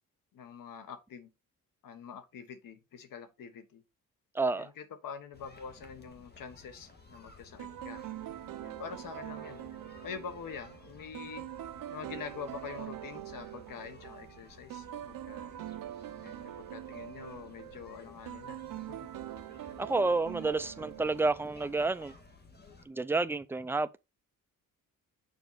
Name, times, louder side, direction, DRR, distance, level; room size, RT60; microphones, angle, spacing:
voice 1, 0.3-1.3 1.8-3.8 4.5-8.0 8.6-9.7 10.0-11.5 11.9-15.5 16.2-18.6 18.9-19.1, left 6 dB, 70° left, 1.4 m, -45 dB
voice 2, 4.4-4.7 19.8-22.1 22.9-24.0, right 3 dB, 5° right, 0.4 m, -30 dB
sound 1, 5.3-22.9, left 3 dB, 30° left, 1.7 m, -56 dB
sound 2, 7.6-21.8, right 12 dB, 70° right, 0.7 m, -44 dB
7.0 x 4.6 x 4.0 m
cardioid pair, 125°, 34 cm